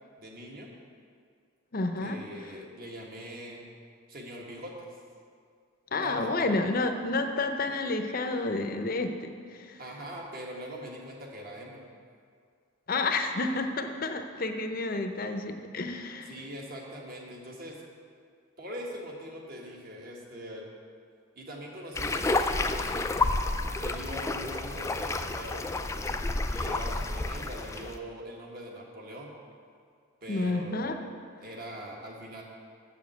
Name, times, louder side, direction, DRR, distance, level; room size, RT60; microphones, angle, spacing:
voice 1, 0.2-0.7 2.0-3.6 4.1-4.9 6.0-6.5 9.8-11.8 16.3-17.8 18.6-20.7 21.3-23.1 23.8-25.9 26.5-29.3 30.2-31.1 31.4-32.4, equal, 45° right, -1 dB, 1.5 m, -42 dB
voice 2, 1.7-2.2 5.9-9.8 12.9-16.3 30.3-31.0, left 2 dB, 45° left, 6 dB, 0.6 m, -30 dB
sound 1, 21.9-28.0, left 2 dB, 15° left, 0.3 m, -30 dB
7.2 x 7.2 x 7.9 m, 2.1 s
head